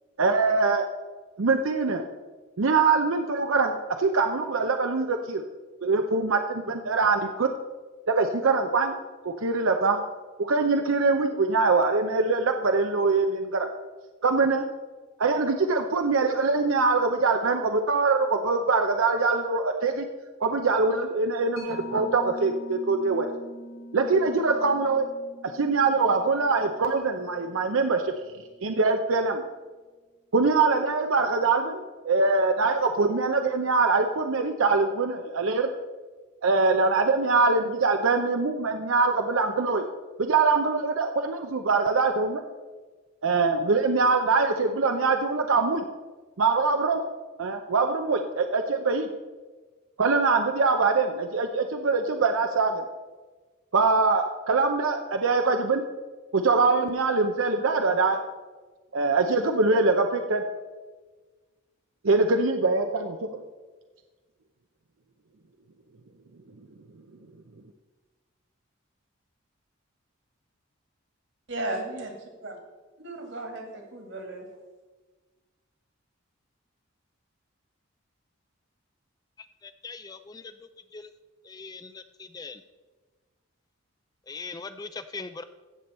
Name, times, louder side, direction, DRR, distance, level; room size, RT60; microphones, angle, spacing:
voice 1, 0.2-0.9 1.4-2.0 2.6-5.4 5.8-7.5 8.1-9.0 9.2-10.0 10.4-13.7 14.2-14.6 15.2-20.1 20.4-23.3 23.9-25.1 25.5-28.1 28.6-29.4 30.3-35.7 36.4-39.8 40.2-42.4 43.2-45.8 46.4-47.0 47.4-49.1 50.0-52.8 53.7-55.8 56.3-58.2 58.9-60.4 62.0-63.4, right 4 dB, 80° right, 5 dB, 0.7 m, -23 dB
Mallet percussion, 21.6-28.6, equal, 85° left, 4.0 m, -43 dB
voice 2, 71.5-72.6 73.0-74.5, right 2 dB, 60° right, 3 dB, 2.2 m, -35 dB
voice 3, 79.8-80.4 80.9-81.0 81.5-81.8 82.3-82.6 84.3-85.4, left 4 dB, 20° left, 11 dB, 0.3 m, -39 dB
15.5 x 6.9 x 4.3 m, 1.3 s
head